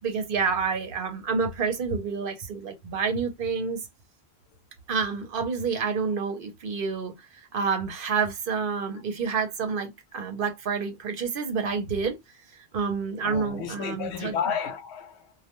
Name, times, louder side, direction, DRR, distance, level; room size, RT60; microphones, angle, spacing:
voice 1, 0.0-3.8 4.9-7.1 7.5-12.2 12.7-14.3, right 5 dB, 60° right, 0.8 m, -28 dB
voice 2, 13.2-15.3, left 7 dB, 90° left, 0.9 m, -32 dB
2.2 x 2.1 x 2.9 m
omnidirectional pair, 1.1 m